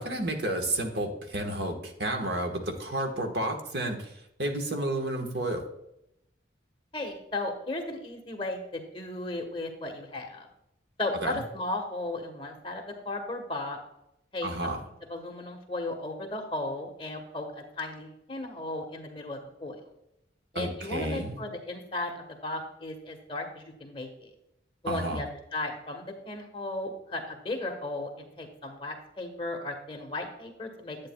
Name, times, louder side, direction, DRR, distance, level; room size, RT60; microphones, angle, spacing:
voice 1, 0.0-4.1 4.4-5.6 11.2-11.4 14.4-14.8 20.5-21.4 24.9-25.2, right 1 dB, 60° right, 3 dB, 1.3 m, -31 dB
voice 2, 6.9-10.5 11.0-13.8 14.3-14.5 15.1-19.9 20.5-24.3 24.8-25.3 25.5-31.0, left 2 dB, 30° left, 3 dB, 1.2 m, -35 dB
10.5 x 8.6 x 2.3 m, 0.81 s
head